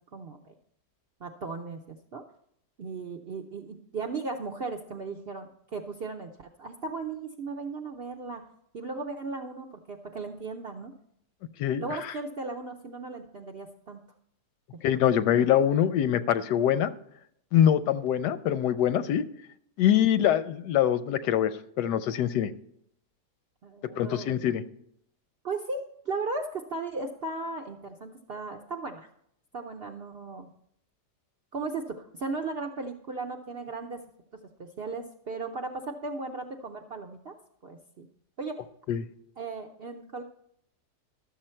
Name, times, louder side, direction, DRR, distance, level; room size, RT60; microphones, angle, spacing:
voice 1, 0.1-0.5 1.2-2.2 2.8-8.4 8.7-10.9 11.8-14.0 14.7-14.8 19.9-20.0 23.6-24.4 25.4-29.1 29.5-30.5 31.5-34.0 34.6-37.3 37.6-38.1 38.4-38.6 39.4-40.2, right 3 dB, 60° right, 3 dB, 0.6 m, -36 dB
voice 2, 14.8-16.9 17.5-19.2 19.8-21.5 21.8-22.5 24.0-24.6 38.9-39.1, left 10 dB, 90° left, 13 dB, 1.2 m, -24 dB
12.0 x 7.1 x 4.4 m, 0.72 s
omnidirectional pair, 1.8 m